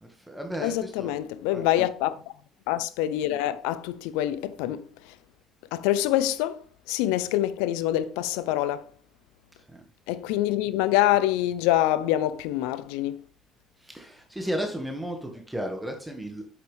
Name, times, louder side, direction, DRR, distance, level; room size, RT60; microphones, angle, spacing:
voice 1, 0.0-1.1 1.5-1.8 9.6-9.8 13.8-16.4, equal, 10° right, 1.8 m, -34 dB
voice 2, 0.6-2.2 2.7-5.1 5.7-8.9 10.1-13.2, left 13 dB, 85° left, 0.6 m, -26 dB
8.0 x 8.0 x 3.4 m
supercardioid pair, 70°, 0 cm